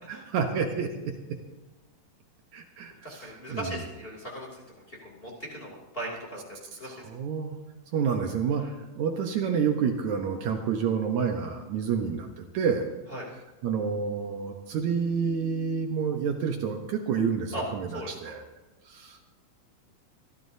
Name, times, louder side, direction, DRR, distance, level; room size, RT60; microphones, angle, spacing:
voice 1, 0.1-1.1 2.5-3.8 6.8-7.6 7.9-12.9 13.6-18.4 18.9-19.2, right 6 dB, 70° right, 3 dB, 2.3 m, -29 dB
voice 2, 3.0-6.4 6.8-7.1 8.6-8.7 13.1-13.3 17.5-17.6 17.9-18.3, equal, 20° left, -4 dB, 2.7 m, -38 dB
25.5 x 13.5 x 2.7 m, 1.1 s
omnidirectional pair, 3.8 m